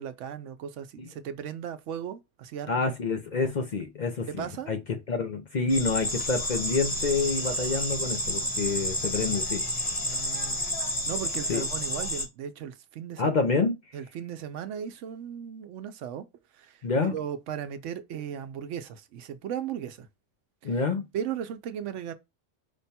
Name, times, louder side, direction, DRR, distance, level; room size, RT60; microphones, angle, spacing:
voice 1, 0.0-2.7 4.3-4.7 10.0-10.6 11.1-13.6 13.9-16.3 16.5-20.1 20.6-20.7 21.1-22.1, right 9 dB, 85° right, 1.0 m, -36 dB
voice 2, 2.7-9.6 11.5-11.6 13.2-13.8 16.8-17.2 20.6-21.0, left 4 dB, 50° left, 0.6 m, -28 dB
sound 1, 5.7-12.3, equal, 20° left, 1.0 m, -30 dB
5.1 x 2.2 x 4.1 m
omnidirectional pair, 1.2 m